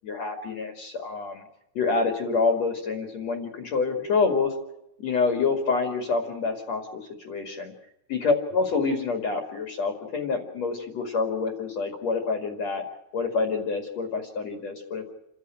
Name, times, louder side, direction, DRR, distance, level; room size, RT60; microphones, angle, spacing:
voice 1, 0.0-1.4 1.7-4.5 5.0-7.7 8.1-12.8 13.1-15.0, left 4 dB, 45° left, 4 dB, 2.6 m, -27 dB
29.5 x 13.0 x 8.9 m, 0.86 s
omnidirectional pair, 5.7 m